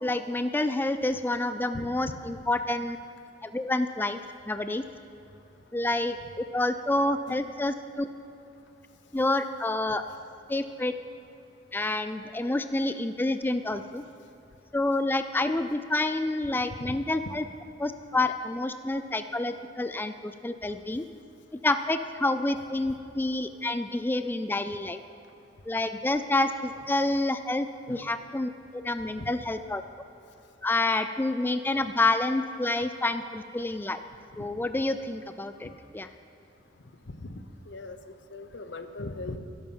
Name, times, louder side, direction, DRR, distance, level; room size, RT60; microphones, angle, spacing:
voice 1, 0.0-3.0 3.4-4.2 4.5-4.8 5.7-8.1 9.1-10.0 10.5-10.9 11.7-14.0 14.7-17.4 17.8-21.1 21.6-25.0 25.7-29.8 30.6-34.0 34.4-36.1, left 2 dB, 10° left, 9 dB, 0.4 m, -28 dB
voice 2, 38.3-39.4, left 2 dB, 75° left, 9 dB, 0.9 m, -38 dB
14.0 x 12.0 x 5.5 m, 2.8 s
head